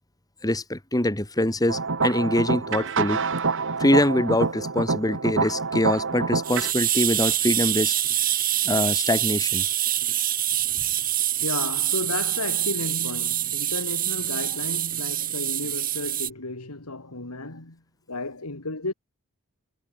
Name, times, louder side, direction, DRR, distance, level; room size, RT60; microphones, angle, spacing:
voice 1, 0.4-3.2 3.8-7.9 8.6-9.6, left 1 dB, 15° left, 2.3 m, -24 dB
sound 1, 1.7-6.7, right 4 dB, 60° right, 1.8 m, -26 dB
sound 2, 6.4-16.3, right 12 dB, 40° right, 2.2 m, -25 dB
voice 2, 11.4-17.8 18.1-18.9, left 2 dB, 85° left, 3.0 m, -33 dB
head